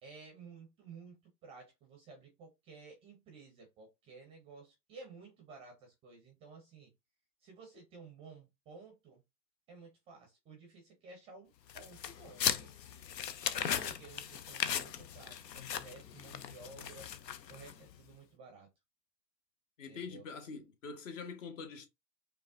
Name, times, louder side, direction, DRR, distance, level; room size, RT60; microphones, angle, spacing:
voice 1, 0.0-6.9 7.4-9.2 9.7-13.0 13.6-17.1 17.5-18.7 19.9-20.2, right 4 dB, 10° right, 0.5 m, -54 dB
sound 1, 11.7-17.9, left 9 dB, 80° left, 0.6 m, -38 dB
voice 2, 19.8-21.9, left 5 dB, 50° left, 1.0 m, -44 dB
5.1 x 2.1 x 2.4 m
figure-of-eight pair, 110°, 49 cm